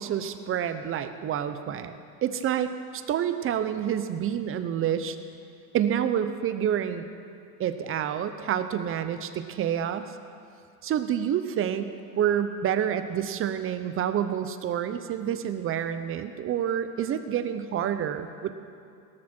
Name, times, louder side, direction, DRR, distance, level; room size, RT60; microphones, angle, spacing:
voice 1, 0.0-1.9 2.2-5.2 5.7-7.1 7.6-10.1 10.8-18.5, right 9 dB, 30° right, 10 dB, 0.8 m, -28 dB
17.5 x 14.0 x 4.5 m, 2.5 s
supercardioid pair, 125°, 47 cm